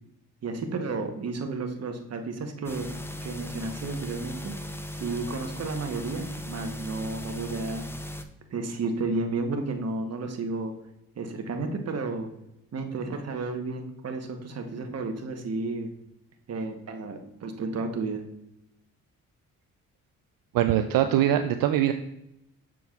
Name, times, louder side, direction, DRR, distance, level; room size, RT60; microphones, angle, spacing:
voice 1, 0.4-2.9 3.1-4.5 5.0-7.9 8.5-10.7 11.2-12.3 12.7-15.9 16.5-18.2, right 3 dB, 45° right, 5 dB, 1.1 m, -32 dB
sound 1, 2.6-8.2, equal, 5° left, 0.5 m, -37 dB
voice 2, 20.5-21.9, right 11 dB, 75° right, 8 dB, 0.5 m, -22 dB
6.9 x 6.1 x 2.4 m, 0.83 s
cardioid pair, 70°, 34 cm